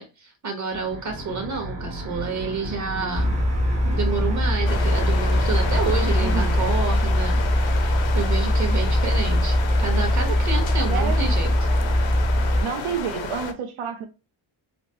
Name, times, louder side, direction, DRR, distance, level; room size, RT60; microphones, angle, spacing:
voice 1, 0.0-3.4 3.8-11.5, right 4 dB, 35° right, 1.0 m, -29 dB
sound 1, 0.7-6.8, right 1 dB, 55° right, 1.3 m, -34 dB
sound 2, 3.1-12.6, equal, 15° right, 0.5 m, -21 dB
sound 3, 4.6-13.5, left 7 dB, 70° left, 0.6 m, -32 dB
voice 2, 6.2-6.5 10.9-11.3 12.6-14.1, right 7 dB, 85° right, 0.6 m, -29 dB
3.2 x 2.0 x 2.6 m
wide cardioid pair, 140°, 48 cm